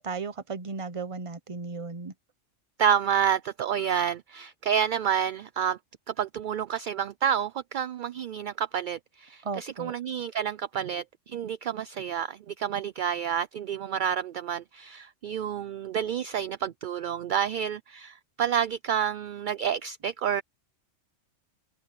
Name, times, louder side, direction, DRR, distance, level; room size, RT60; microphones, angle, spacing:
voice 1, 0.0-2.1 9.4-9.9, right 4 dB, 30° right, 0.8 m, -35 dB
voice 2, 2.8-5.8 6.1-20.4, right 8 dB, 55° right, 0.6 m, -29 dB
omnidirectional pair, 1.2 m